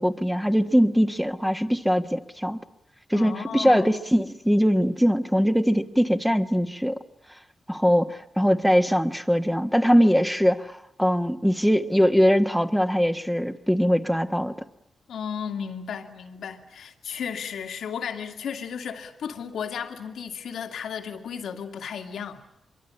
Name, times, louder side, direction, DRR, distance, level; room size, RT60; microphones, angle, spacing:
voice 1, 0.0-2.6 3.1-7.0 7.7-14.5, equal, ahead, 1.5 m, -21 dB
voice 2, 3.1-4.0 15.1-22.4, left 7 dB, 90° left, 2.3 m, -34 dB
25.0 x 23.5 x 9.9 m
cardioid pair, 80°, 0 cm